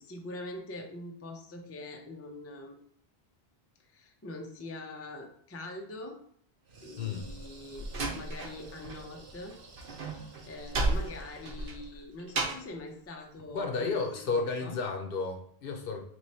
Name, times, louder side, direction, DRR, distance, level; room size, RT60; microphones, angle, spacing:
voice 1, 0.0-2.8 3.9-6.2 6.8-7.9 8.2-9.6 10.0-14.8, left 2 dB, 25° left, 2 dB, 0.3 m, -44 dB
sound 1, 6.6-12.0, right 3 dB, 90° right, 1.1 m, -53 dB
voice 2, 7.0-7.3 13.5-16.0, left 4 dB, 65° left, 4 dB, 0.8 m, -32 dB
Slam, 7.2-9.0 9.3-12.8, right 2 dB, 60° right, 1.0 m, -34 dB
3.1 x 3.0 x 4.2 m, 0.62 s
omnidirectional pair, 1.1 m